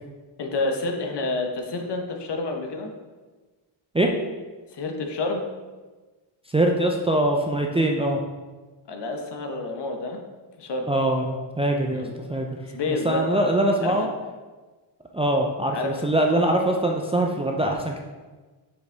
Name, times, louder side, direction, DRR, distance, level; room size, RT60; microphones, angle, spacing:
voice 1, 0.4-2.9 4.7-5.4 8.9-10.2 10.6-10.9 11.9-12.1 12.7-13.2 13.8-14.1 15.7-16.0, left 3 dB, 55° left, 3 dB, 1.1 m, -29 dB
voice 2, 6.5-8.2 10.9-12.5 13.0-14.1 15.1-18.0, right 1 dB, 15° right, 1 dB, 0.4 m, -23 dB
6.7 x 5.2 x 3.4 m, 1.3 s
cardioid pair, 105°, 49 cm